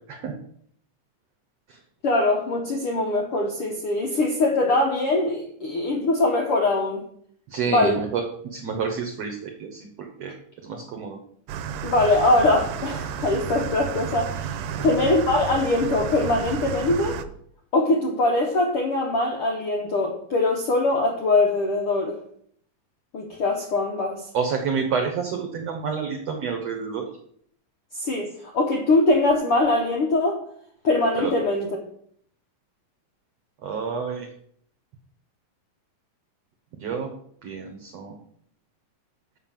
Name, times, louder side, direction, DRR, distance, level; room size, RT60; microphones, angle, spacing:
voice 1, 2.0-7.0 7.7-8.0 11.8-14.6 14.8-17.2 17.7-22.1 23.1-24.2 28.0-30.4 30.8-31.7, left 2 dB, 80° left, 1 dB, 1.2 m, -22 dB
voice 2, 7.5-10.3 10.6-11.2 14.8-15.0 24.3-27.1 31.1-31.3 33.6-34.3 36.8-37.1 37.4-38.2, right 6 dB, 65° right, 3 dB, 1.7 m, -29 dB
sound 1, 11.5-17.3, right 8 dB, 80° right, 2.1 m, -32 dB
7.5 x 5.7 x 7.3 m, 0.65 s
omnidirectional pair, 4.1 m